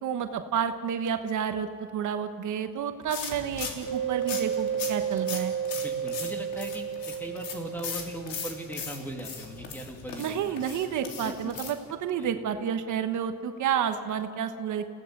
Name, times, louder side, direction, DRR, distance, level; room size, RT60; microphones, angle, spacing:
voice 1, 0.0-1.7 1.9-5.5 10.2-14.9, right 8 dB, 60° right, 7 dB, 1.3 m, -30 dB
sound 1, 3.1-11.7, left 6 dB, 80° left, 3.3 m, -39 dB
sound 2, 3.8-9.2, right 8 dB, 35° left, 6.5 m, -32 dB
voice 2, 5.7-10.6 11.2-11.3 12.2-12.3, right 1 dB, 5° left, 3 dB, 2.5 m, -39 dB
28.5 x 17.0 x 6.8 m, 2.3 s
cardioid pair, 135°, 34 cm